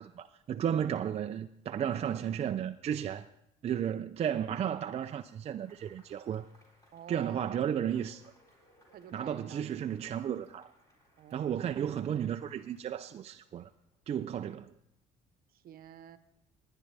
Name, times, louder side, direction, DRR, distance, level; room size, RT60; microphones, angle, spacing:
voice 1, 0.0-3.2 3.6-6.5 7.1-8.3 9.1-10.7 11.3-13.7 14.1-14.7, right 9 dB, 40° right, 0.4 m, -33 dB
Cheering / Applause / Crowd, 5.4-14.1, equal, 20° left, 3.9 m, -65 dB
voice 2, 6.9-7.4 8.9-9.9 11.2-11.8 15.5-16.2, right 10 dB, 60° right, 0.9 m, -50 dB
20.0 x 9.8 x 3.3 m
cardioid pair, 110°, 17 cm